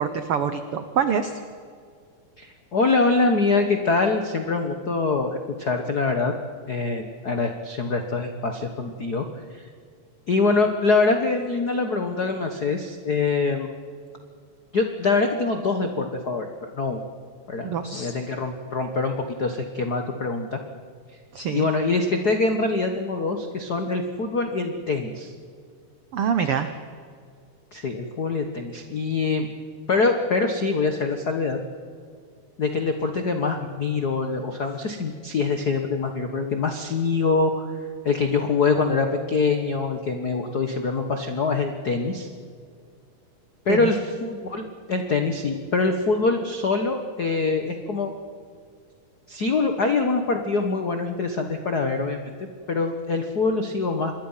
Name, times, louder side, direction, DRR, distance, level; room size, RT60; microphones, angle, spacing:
voice 1, 0.0-1.4 17.6-18.1 21.3-21.7 26.1-26.7 43.7-43.9, right 7 dB, 85° right, 9 dB, 1.2 m, -25 dB
voice 2, 2.4-6.3 6.7-9.2 9.5-9.7 10.3-13.7 14.7-17.0 17.5-20.6 21.5-25.3 27.7-29.5 29.9-31.6 32.6-37.7 38.0-42.3 43.6-48.1 49.3-52.3 52.7-54.2, left 3 dB, 90° left, 5 dB, 0.8 m, -24 dB
26.0 x 21.0 x 5.7 m, 2.1 s
omnidirectional pair, 3.9 m